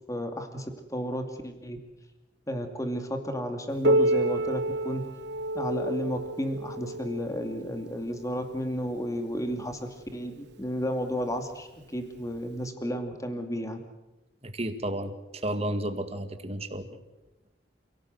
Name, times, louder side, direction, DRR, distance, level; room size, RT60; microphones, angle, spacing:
voice 1, 0.1-1.8 2.5-5.0 5.5-13.8, equal, 20° left, 6 dB, 2.7 m, -32 dB
Piano, 3.8-9.2 10.0-10.1 10.6-10.7 11.5-11.6 12.6-12.7, right 1 dB, 60° right, 0.8 m, -29 dB
voice 2, 14.4-16.9, right 1 dB, 35° right, 8 dB, 2.1 m, -32 dB
28.5 x 17.5 x 8.0 m, 1.0 s
head